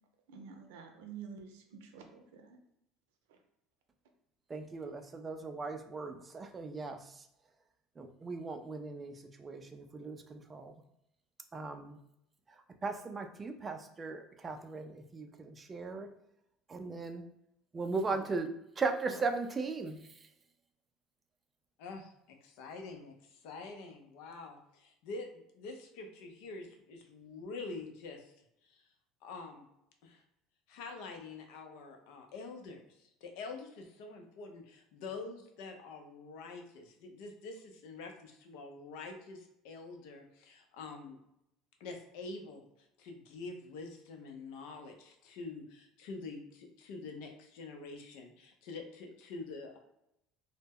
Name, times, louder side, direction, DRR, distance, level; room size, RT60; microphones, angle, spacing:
voice 1, 0.3-2.6 3.3-3.4, right 6 dB, 85° right, 4 dB, 0.5 m, -49 dB
voice 2, 4.5-7.3 8.0-10.8 11.5-12.0 12.8-16.1 16.7-17.3 17.7-20.3, right 4 dB, 25° right, 6 dB, 0.3 m, -38 dB
voice 3, 21.8-28.3 28.6-28.9 29.2-29.6 30.0-30.2 30.7-41.2 41.8-42.6 43.0-49.8, left 3 dB, 75° left, 3 dB, 0.5 m, -46 dB
2.0 x 2.0 x 3.5 m, 0.80 s
supercardioid pair, 100°, 0 cm